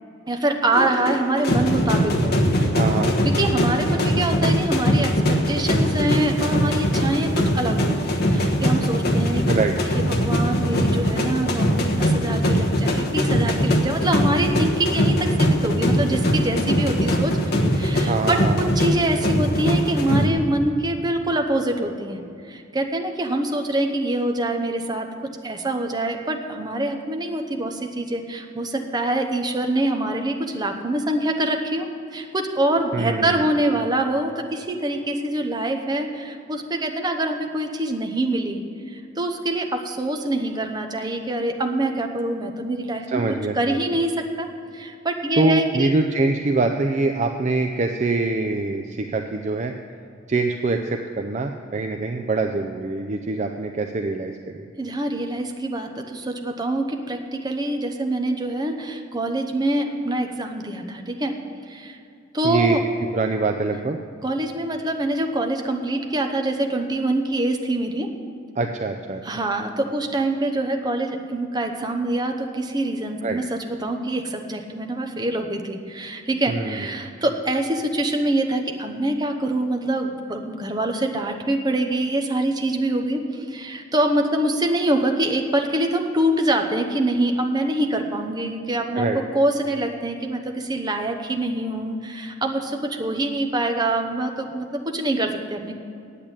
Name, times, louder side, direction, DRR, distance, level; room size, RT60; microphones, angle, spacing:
voice 1, 0.3-2.7 3.2-9.4 10.1-22.2 22.5-31.9 32.1-38.6 38.9-43.2 43.5-44.5 44.7-45.9 54.8-61.3 61.6-62.0 62.3-62.8 64.2-68.1 69.2-89.1 89.3-95.7, right 1 dB, 20° right, 4 dB, 0.9 m, -25 dB
sound 1, 0.7-20.3, equal, 55° left, 1.2 m, -21 dB
voice 2, 2.7-3.1 9.5-9.7 18.1-18.7 32.9-33.4 43.1-43.8 45.4-49.7 50.3-54.7 62.4-62.8 63.1-64.0 68.6-69.2 73.2-73.4 76.5-77.1 88.9-89.2, right 3 dB, 40° right, 5 dB, 0.5 m, -24 dB
8.7 x 8.4 x 8.8 m, 2.5 s
head